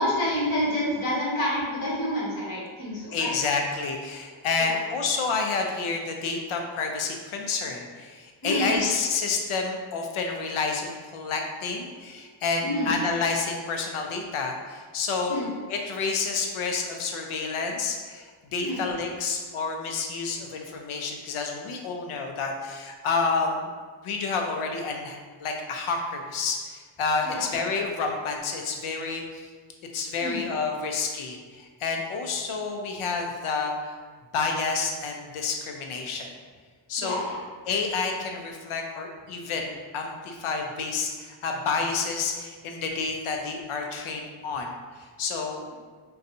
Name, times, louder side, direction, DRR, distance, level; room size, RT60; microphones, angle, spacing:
voice 1, 0.0-3.3 4.6-4.8 8.4-8.8 12.6-12.9 15.3-15.5 18.6-18.8 27.2-27.4 30.2-30.4 37.0-37.4, equal, 40° left, -8 dB, 1.3 m, -28 dB
voice 2, 3.1-15.4 15.7-23.7 24.0-29.5 29.9-34.0 34.3-36.3 36.9-37.2 37.7-45.6, left 4 dB, 75° left, 2 dB, 0.6 m, -29 dB
4.0 x 2.3 x 2.6 m, 1.5 s
wide cardioid pair, 155°, 49 cm